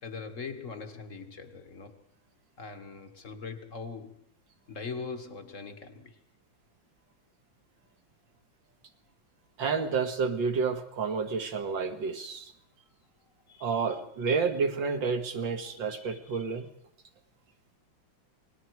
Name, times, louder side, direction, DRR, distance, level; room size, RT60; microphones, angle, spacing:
voice 1, 0.0-2.0 2.6-4.3 4.7-6.1 13.5-14.6 14.8-15.0 15.6-16.7, left 4 dB, 40° left, 1.6 m, -42 dB
voice 2, 9.6-12.5 13.6-16.7, right 5 dB, 70° right, 2.5 m, -30 dB
28.0 x 20.0 x 4.7 m
omnidirectional pair, 2.1 m